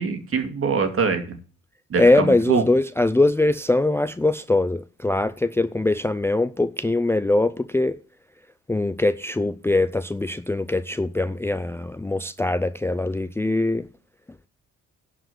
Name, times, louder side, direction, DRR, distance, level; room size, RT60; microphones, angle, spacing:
voice 1, 0.0-1.4 1.9-2.6, right 5 dB, 45° right, 2.3 m, -24 dB
voice 2, 2.0-8.0 8.7-13.9, left 2 dB, 10° left, 0.5 m, -22 dB
11.0 x 5.1 x 7.9 m
cardioid pair, 90°, 30 cm